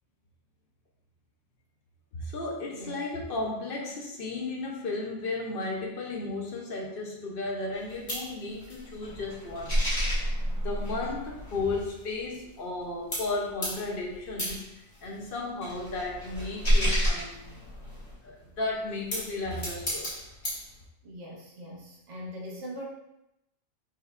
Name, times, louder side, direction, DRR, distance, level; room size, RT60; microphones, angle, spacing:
voice 1, 2.1-9.9 10.5-14.6 15.0-17.6 18.2-20.1, left 2 dB, 60° left, -1 dB, 0.7 m, -34 dB
voice 2, 2.7-3.1 21.0-22.8, equal, 85° right, -3 dB, 1.1 m, -41 dB
sound 1, 7.7-12.8 13.1-18.1 18.8-20.7, equal, 35° left, 1.3 m, -31 dB
4.8 x 2.2 x 2.3 m, 0.87 s
omnidirectional pair, 1.2 m